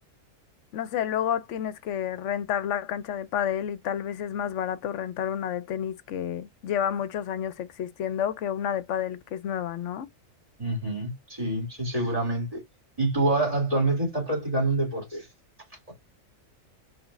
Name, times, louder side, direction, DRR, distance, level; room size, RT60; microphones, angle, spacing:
voice 1, 0.7-10.1, left 9 dB, 70° left, 0.9 m, -30 dB
voice 2, 10.6-12.6 13.0-15.3 15.9-16.0, right 2 dB, 30° right, 2.9 m, -26 dB
5.0 x 3.4 x 2.5 m
omnidirectional pair, 1.3 m